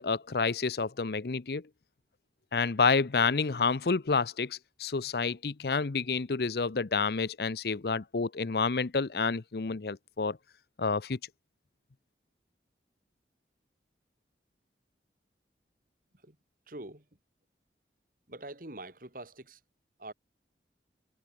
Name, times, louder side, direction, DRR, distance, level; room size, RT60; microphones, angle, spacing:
voice 1, 0.0-1.7 2.5-10.4 10.8-11.2, left 4 dB, 60° left, 0.7 m, -29 dB
voice 2, 16.7-17.1 18.3-19.6 20.0-20.1, right 2 dB, 50° right, 2.9 m, -44 dB
head